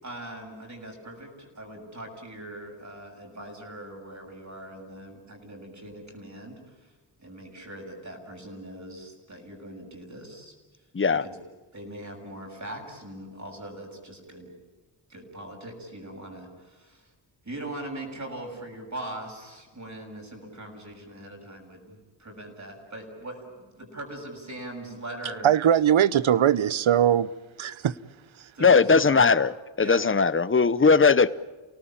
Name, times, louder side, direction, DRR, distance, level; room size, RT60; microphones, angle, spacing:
voice 1, 0.0-6.9 7.2-10.5 11.2-11.3 11.7-14.5 15.1-17.1 17.4-25.4 28.5-29.3 29.8-30.0, right 1 dB, 35° right, 6.8 m, -41 dB
voice 2, 10.9-11.2 28.6-29.5 29.8-31.3, left 5 dB, 25° left, 0.8 m, -19 dB
voice 3, 25.4-27.3 27.6-28.0 28.4-28.5, right 10 dB, 80° right, 0.8 m, -21 dB
29.0 x 18.5 x 8.9 m
wide cardioid pair, 115°, 46 cm